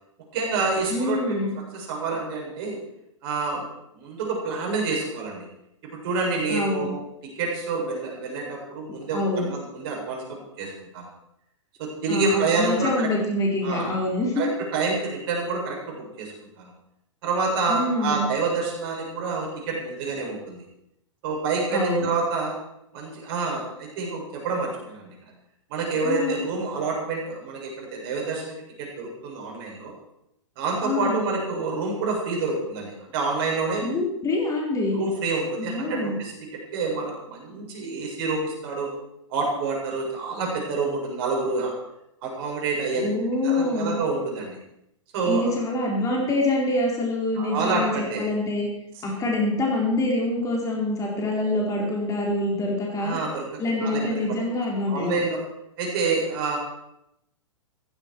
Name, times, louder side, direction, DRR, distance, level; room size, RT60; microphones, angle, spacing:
voice 1, 0.3-1.4 1.7-2.8 3.2-3.7 3.9-5.5 5.9-7.0 7.2-11.1 11.8-13.1 13.6-13.9 14.4-16.7 17.2-20.7 21.2-22.6 22.9-25.2 25.7-29.9 30.6-33.8 34.9-36.3 36.7-38.9 39.3-41.8 42.2-43.1 43.4-44.6 45.1-45.5 47.4-48.2 53.0-54.4 54.9-55.4 55.8-56.6, right 4 dB, 50° right, -1 dB, 7.2 m, -28 dB
voice 2, 0.9-1.5 6.5-6.9 8.9-9.5 12.1-14.4 17.7-18.3 21.7-22.1 26.0-26.4 30.8-31.2 33.8-35.0 35.6-36.1 43.0-44.0 45.3-48.7 49.0-53.2 53.6-55.2, left 2 dB, 20° left, -1 dB, 4.2 m, -25 dB
16.0 x 15.5 x 4.7 m, 0.80 s
figure-of-eight pair, 110°, 16 cm